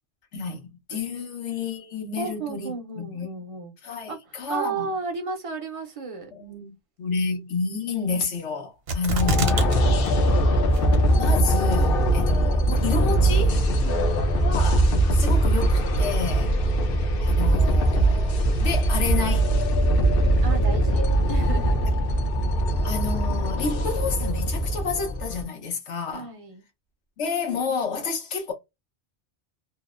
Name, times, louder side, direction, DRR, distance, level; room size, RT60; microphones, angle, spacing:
voice 1, 0.3-3.3 3.8-4.9 6.4-9.7 11.2-13.6 14.4-16.5 17.2-19.5 22.8-26.3 27.2-28.5, left 4 dB, 90° left, 1.1 m, -30 dB
voice 2, 2.2-3.7 4.1-6.3 9.1-9.2 9.8-10.7 13.8-14.3 16.4-16.6 20.4-22.1 26.1-26.6, right 4 dB, 45° right, 0.5 m, -35 dB
sound 1, 8.9-9.8 10.1-10.2 10.7-11.2 11.7-11.8, right 1 dB, 65° right, 0.9 m, -25 dB
sound 2, 9.2-25.4, right 1 dB, 65° left, 0.7 m, -21 dB
2.8 x 2.0 x 2.3 m
omnidirectional pair, 1.2 m